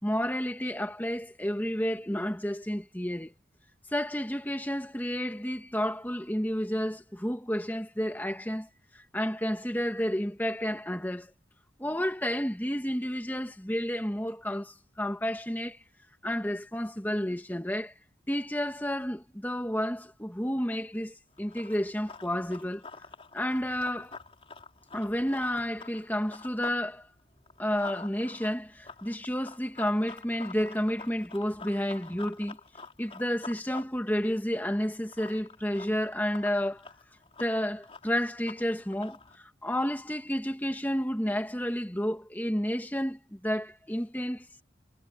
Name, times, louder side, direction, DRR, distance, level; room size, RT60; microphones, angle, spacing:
voice 1, 0.0-3.3 3.9-11.3 11.8-15.8 16.2-18.0 18.3-22.8 23.3-24.2 24.9-27.1 27.6-32.6 33.0-36.9 37.4-44.6, equal, 10° left, 2.0 m, -31 dB
Run, 21.3-26.8 27.1-39.4, left 4 dB, 30° left, 4.3 m, -48 dB
head